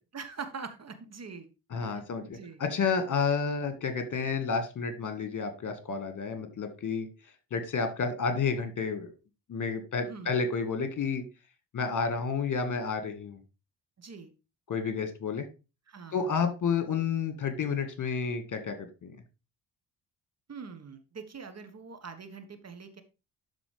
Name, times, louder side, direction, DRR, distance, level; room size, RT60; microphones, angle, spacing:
voice 1, 0.1-1.5 1.8-2.6 10.1-10.4 14.0-14.3 15.9-16.4 20.5-23.0, right 5 dB, 35° right, 9 dB, 1.3 m, -43 dB
voice 2, 1.7-7.1 7.5-9.1 9.5-11.2 11.7-13.4 14.7-15.5 16.1-19.1, left 5 dB, 40° left, 8 dB, 1.8 m, -30 dB
12.0 x 4.2 x 3.4 m, 0.29 s
hypercardioid pair, 45°, 47 cm